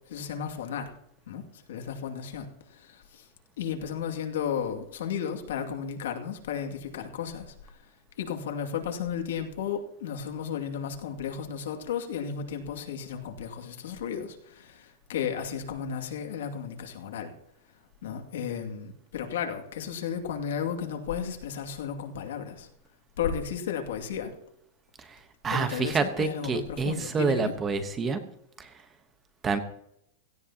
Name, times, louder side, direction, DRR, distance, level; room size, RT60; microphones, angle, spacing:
voice 1, 0.1-0.9 1.3-1.4 1.7-3.2 3.6-7.5 8.2-17.3 18.0-22.7 23.2-24.3 25.5-27.5, left 7 dB, 85° left, 4 dB, 2.3 m, -34 dB
voice 2, 25.4-28.2 29.4-29.6, right 4 dB, 15° right, 9 dB, 1.0 m, -27 dB
17.0 x 15.5 x 2.9 m, 0.77 s
supercardioid pair, 175°, 0 cm